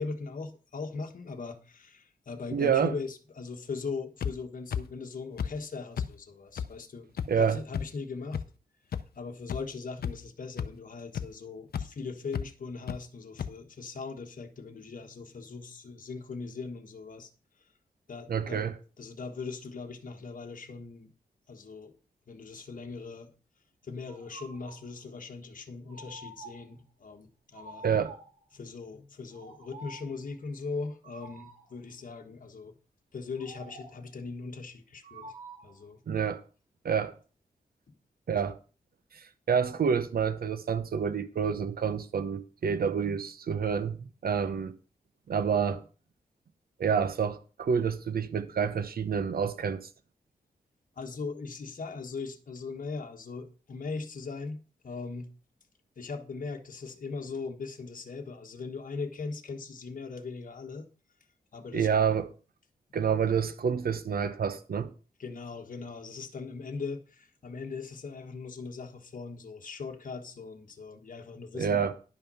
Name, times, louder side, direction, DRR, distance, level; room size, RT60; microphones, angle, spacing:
voice 1, 0.0-7.1 7.4-8.4 9.1-17.3 18.1-18.7 19.0-21.1 21.5-21.9 22.3-23.3 23.8-27.8 28.5-32.8 33.1-35.3 35.6-36.0 37.9-38.0 51.0-54.6 54.8-55.3 56.0-60.9 61.5-61.9 65.2-71.9, left 4 dB, 55° left, 1.5 m, -39 dB
voice 2, 2.5-2.9 7.3-7.6 18.3-18.8 27.8-28.1 36.1-36.4 36.8-37.1 38.3-38.6 39.1-44.7 45.3-45.8 46.8-49.8 61.7-62.3 62.9-64.9 71.6-71.9, right 7 dB, 70° right, 0.9 m, -28 dB
sound 1, 4.2-4.3 4.7-4.8 5.4-5.5 6.0-6.1 6.6-6.7 7.2-7.3 7.7-7.8 8.3-8.4 8.9-9.0 9.5-9.6 10.0-10.3 10.6-10.7 11.1-11.3 11.7-11.8 12.3-12.4 12.9-13.0 13.4-13.5, left 7 dB, 75° left, 0.7 m, -31 dB
sound 2, 24.1-24.9 25.9-26.8 27.5-28.4 29.3-30.2 31.0-31.7 33.4-34.1 35.0-35.8, right 1 dB, 55° right, 3.1 m, -48 dB
11.0 x 5.7 x 5.5 m
wide cardioid pair, 90°, 16 cm